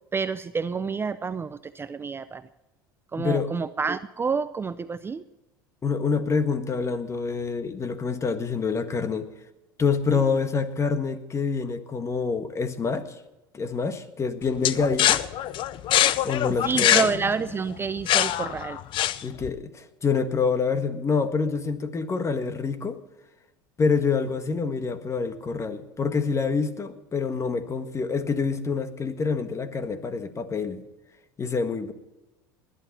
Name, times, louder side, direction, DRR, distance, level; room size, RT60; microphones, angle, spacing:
voice 1, 0.1-2.5 3.1-5.2 10.1-10.2 16.6-18.8, right 5 dB, 20° right, 14 dB, 0.5 m, -28 dB
voice 2, 3.2-3.5 5.8-9.3 9.8-13.1 13.5-15.2 16.2-17.1 19.2-23.0 23.8-30.8 31.4-31.9, left 5 dB, 25° left, 9 dB, 1.6 m, -26 dB
sound 1, 14.6-19.5, left 12 dB, 50° left, 0.7 m, -23 dB
20.5 x 11.5 x 4.3 m, 1.0 s
hypercardioid pair, 90°, 11 cm